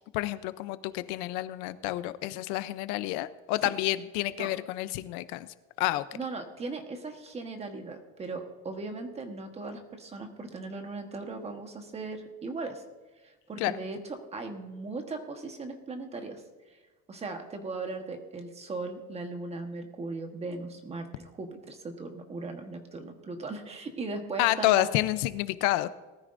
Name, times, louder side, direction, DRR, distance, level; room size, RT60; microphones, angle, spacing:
voice 1, 0.1-5.5 5.8-6.0 13.6-13.7 24.4-25.9, left 16 dB, 90° left, 14 dB, 0.7 m, -29 dB
voice 2, 6.1-12.8 13.2-16.4 17.1-24.9, right 3 dB, 20° right, 5 dB, 1.3 m, -38 dB
19.5 x 13.5 x 2.6 m, 1.3 s
cardioid pair, 155°, 31 cm